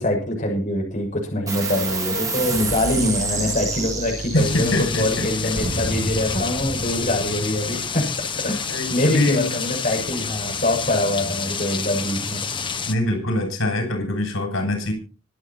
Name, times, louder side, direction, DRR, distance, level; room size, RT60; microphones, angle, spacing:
voice 1, 0.0-8.1 8.4-12.4, left 1 dB, 40° left, 0 dB, 6.9 m, -24 dB
sound 1, 1.5-8.4, right 3 dB, 15° right, 4.5 m, -30 dB
voice 2, 4.3-5.5 8.7-9.6 12.9-14.9, left 1 dB, 90° left, 4 dB, 7.5 m, -24 dB
sound 2, 4.4-13.0, left 5 dB, 25° left, 1.1 m, -29 dB
sound 3, 5.6-8.3, equal, 45° right, 2.6 m, -32 dB
25.0 x 9.1 x 4.4 m, 0.35 s
head